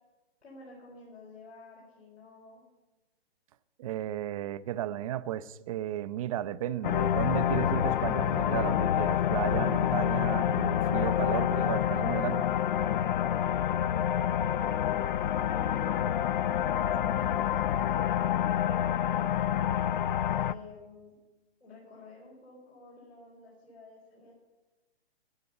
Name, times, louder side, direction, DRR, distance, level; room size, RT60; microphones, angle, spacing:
voice 1, 0.4-2.6 14.4-19.7 20.3-21.1 21.6-24.3, left 3 dB, 85° left, 4.7 m, -52 dB
voice 2, 3.8-12.5, right 12 dB, 35° right, 0.5 m, -34 dB
sound 1, 6.8-20.5, left 10 dB, 50° left, 0.5 m, -27 dB
11.5 x 9.7 x 7.9 m
hypercardioid pair, 130°, 32 cm